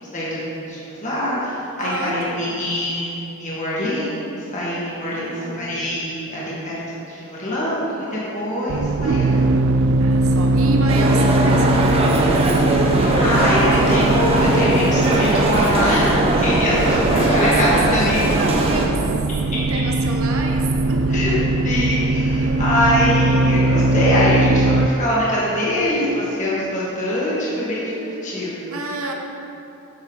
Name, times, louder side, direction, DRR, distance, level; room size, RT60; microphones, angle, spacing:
voice 1, 0.0-9.4 12.9-16.2 16.4-18.2 21.1-21.3 21.6-28.7, equal, 35° left, -8 dB, 2.0 m, -23 dB
voice 2, 1.8-2.8 5.0-5.7 10.0-12.0 17.2-19.1 19.4-21.4 22.4-22.6 23.4-23.7 28.7-29.1, right 2 dB, 75° right, 1 dB, 0.9 m, -29 dB
sound 1, 8.7-24.9, right 2 dB, 55° right, 0.3 m, -20 dB
sound 2, 10.9-18.9, right 1 dB, 25° right, 0.8 m, -20 dB
9.6 x 7.1 x 4.0 m, 2.8 s
head